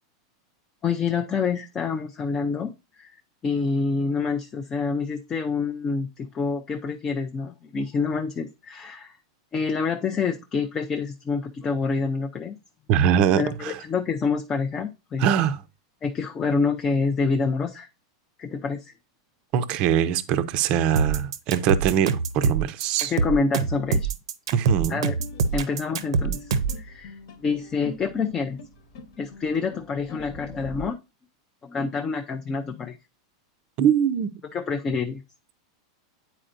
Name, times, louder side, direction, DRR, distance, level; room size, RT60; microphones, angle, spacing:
voice 1, 0.8-2.7 3.0-3.2 3.4-9.2 9.5-12.6 13.4-15.3 16.0-17.9 18.4-18.9 23.0-24.1 24.9-25.1 25.5-27.2 27.4-28.6 29.2-31.0 31.6-33.0 34.5-35.2, left 5 dB, 20° left, 0.4 m, -27 dB
voice 2, 12.9-13.8 15.2-15.6 19.5-23.1 24.5-25.0 33.8-34.3, right 9 dB, 35° right, 0.5 m, -22 dB
sound 1, 21.0-26.8, right 5 dB, 90° right, 0.7 m, -24 dB
sound 2, 25.2-30.9, left 2 dB, 65° left, 1.1 m, -43 dB
8.9 x 4.2 x 2.5 m
supercardioid pair, 155°, 3 cm